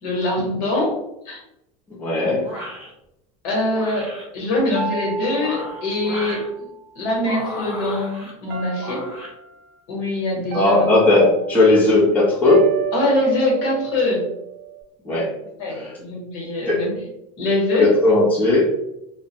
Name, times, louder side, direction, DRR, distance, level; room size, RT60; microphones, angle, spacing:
voice 1, 0.0-1.0 1.2-1.4 3.4-4.1 4.3-6.4 6.9-9.1 9.9-10.9 12.9-14.3 15.6-16.9 17.4-18.0, left 2 dB, 60° left, -2 dB, 1.2 m, -23 dB
voice 2, 2.0-2.5 10.5-12.7 15.0-15.3 15.7-15.9 16.7-16.8 17.8-18.7, left 2 dB, 10° left, -7 dB, 0.7 m, -17 dB
sound 1, 2.4-2.9 3.7-4.2 5.3-6.5 7.2-8.3 8.8-9.3, equal, 10° right, 1.0 m, -34 dB
sound 2, 4.7-7.1 8.5-9.5 10.5-11.8 12.5-14.8, right 9 dB, 60° right, 0.5 m, -31 dB
2.2 x 2.1 x 2.8 m, 0.87 s
supercardioid pair, 130°, 19 cm